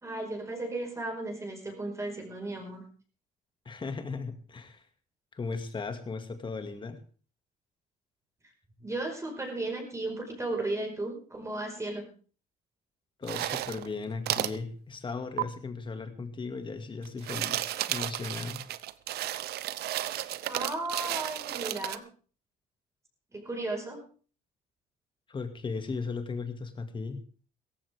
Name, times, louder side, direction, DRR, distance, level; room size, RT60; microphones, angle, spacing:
voice 1, 0.0-2.8 8.8-12.1 20.5-22.1 23.3-24.0, right 2 dB, 15° right, 1 dB, 5.1 m, -35 dB
voice 2, 3.7-4.8 5.3-7.0 13.2-18.6 25.3-27.2, left 4 dB, 30° left, 7 dB, 2.3 m, -37 dB
sound 1, 13.2-13.9 14.3-14.6 15.4-15.5 17.0-22.0, right 14 dB, 70° right, 0.8 m, -33 dB
17.0 x 14.5 x 3.6 m, 0.39 s
cardioid pair, 110°, 17 cm